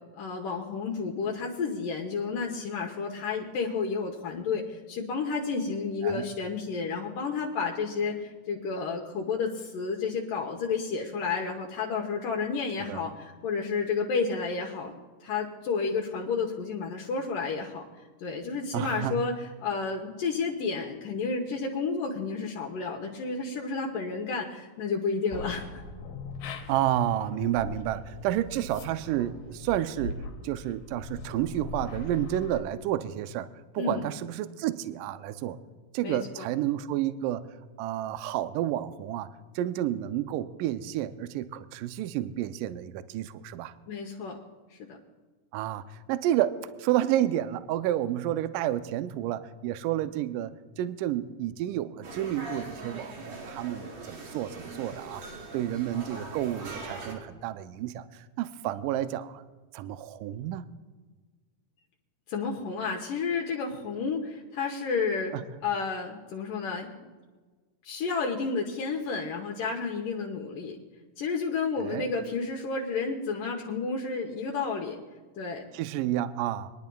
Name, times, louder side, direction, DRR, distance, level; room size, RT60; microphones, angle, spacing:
voice 1, 0.2-15.0 15.2-17.9 18.2-19.3 19.6-25.8 33.8-34.1 36.0-36.5 43.9-44.4 44.7-45.0 62.3-65.3 65.6-66.9 67.8-70.8 71.2-75.0 75.4-75.7, left 5 dB, 70° left, 0 dB, 2.3 m, -31 dB
voice 2, 18.7-19.3 26.7-30.2 30.4-33.5 33.7-35.6 35.9-37.5 37.8-39.3 39.6-43.7 45.5-50.5 50.8-55.2 55.5-59.4 59.7-60.7 65.3-65.4 71.8-72.1 75.7-76.7, right 12 dB, 85° right, 11 dB, 1.9 m, -30 dB
sound 1, 25.3-32.6, left 3 dB, 90° left, 2.8 m, -41 dB
sound 2, 52.0-57.1, right 2 dB, 70° right, 3.8 m, -41 dB
24.5 x 10.5 x 2.3 m, 1.4 s
omnidirectional pair, 4.4 m